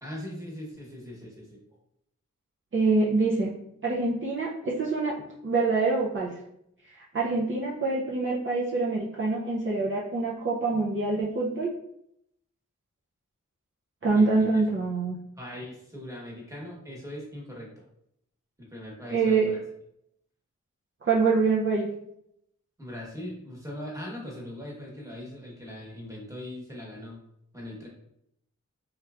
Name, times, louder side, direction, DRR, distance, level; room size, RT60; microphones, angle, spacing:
voice 1, 0.0-1.6 14.1-14.6 15.4-17.7 18.7-19.6 22.8-27.2 27.5-27.9, left 1 dB, 10° right, -3 dB, 1.1 m, -40 dB
voice 2, 2.7-3.5 3.8-5.1 5.4-6.3 6.9-11.7 14.0-15.2 19.1-19.5 21.0-21.9, right 3 dB, 45° right, -5 dB, 0.5 m, -25 dB
3.3 x 2.9 x 2.4 m, 0.76 s
wide cardioid pair, 85°, 29 cm